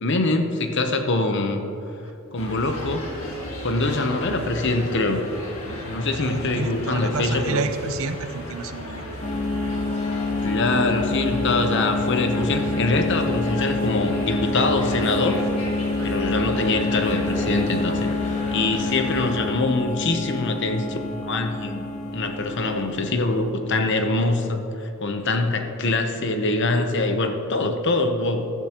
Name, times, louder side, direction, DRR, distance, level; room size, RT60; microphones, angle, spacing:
voice 1, 0.0-1.6 2.3-3.3 3.6-5.2 5.8-7.6 10.4-15.4 16.0-21.8 22.1-28.5, left 2 dB, 55° left, 6 dB, 0.9 m, -24 dB
sound 1, 2.4-19.4, equal, 75° left, 2.0 m, -34 dB
voice 2, 6.2-9.1, right 4 dB, 70° right, 9 dB, 0.7 m, -30 dB
sound 2, 9.2-23.4, left 3 dB, 35° left, 1.3 m, -27 dB
14.5 x 12.0 x 2.9 m, 2.9 s
head